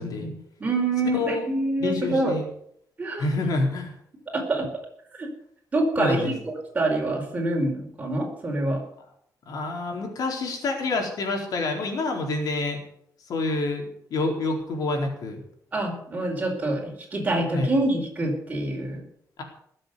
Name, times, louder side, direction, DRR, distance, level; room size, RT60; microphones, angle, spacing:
voice 1, 0.0-2.3 3.0-3.2 4.3-4.7 5.2-5.3 5.7-8.8 15.7-19.0, right 2 dB, 25° right, 1 dB, 4.9 m, -26 dB
voice 2, 1.1-1.5 1.8-2.4 3.2-3.9 6.0-6.3 9.5-12.8 13.3-15.4 17.5-17.7, left 2 dB, 70° left, 2 dB, 4.1 m, -27 dB
20.0 x 7.7 x 8.1 m, 0.68 s
wide cardioid pair, 155°, 6 cm